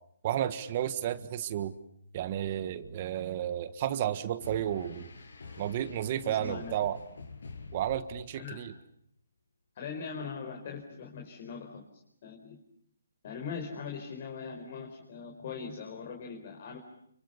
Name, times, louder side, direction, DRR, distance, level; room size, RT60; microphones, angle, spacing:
voice 1, 0.2-1.7 2.1-5.1 5.6-7.0 7.7-8.7, right 11 dB, 35° right, 13 dB, 1.5 m, -32 dB
sound 1, 4.4-8.7, left 4 dB, 75° left, 7.3 m, -47 dB
voice 2, 6.2-6.7 8.3-8.7 9.7-11.8 12.2-12.6 13.2-16.8, left 5 dB, 40° left, 3 dB, 4.7 m, -41 dB
29.5 x 26.0 x 7.1 m, 0.71 s
hypercardioid pair, 160°, 0 cm